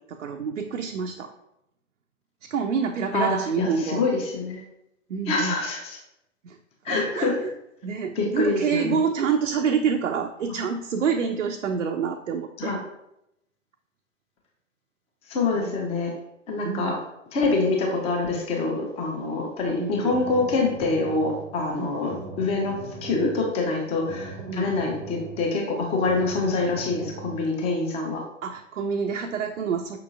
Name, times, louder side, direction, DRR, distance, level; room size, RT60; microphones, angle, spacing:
voice 1, 0.1-1.3 2.5-4.0 5.1-5.6 6.4-6.6 6.9-7.5 7.8-12.8 15.5-15.8 16.6-17.0 19.8-20.2 21.8-22.0 24.5-24.7 28.4-30.0, right 6 dB, 80° right, 4 dB, 0.5 m, -27 dB
voice 2, 3.1-4.6 5.3-6.0 6.8-7.4 8.2-9.0 10.5-10.6 12.6-12.8 15.3-16.1 16.5-17.0 17.3-28.2, left 3 dB, 15° left, 1 dB, 0.7 m, -26 dB
sound 1, 19.8-27.5, right 3 dB, 35° right, 0.6 m, -40 dB
5.6 x 3.8 x 2.4 m, 0.83 s
figure-of-eight pair, 115°, 38 cm